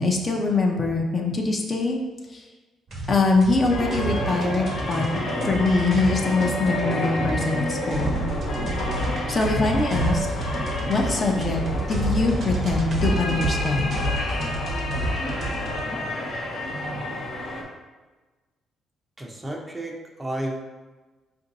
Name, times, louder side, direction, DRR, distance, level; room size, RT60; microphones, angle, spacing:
voice 1, 0.0-2.0 2.3-2.4 3.1-8.2 9.3-10.3 10.9-11.6 11.9-14.0, left 3 dB, 40° left, 1 dB, 0.7 m, -23 dB
sound 1, 2.9-15.8, right 1 dB, 50° right, 1.0 m, -30 dB
sound 2, 3.7-17.6, left 1 dB, 80° left, 1.0 m, -30 dB
voice 2, 19.2-20.6, right 1 dB, 15° right, 0 dB, 0.7 m, -32 dB
4.3 x 2.6 x 4.0 m, 1.2 s
cardioid pair, 90°, 0 cm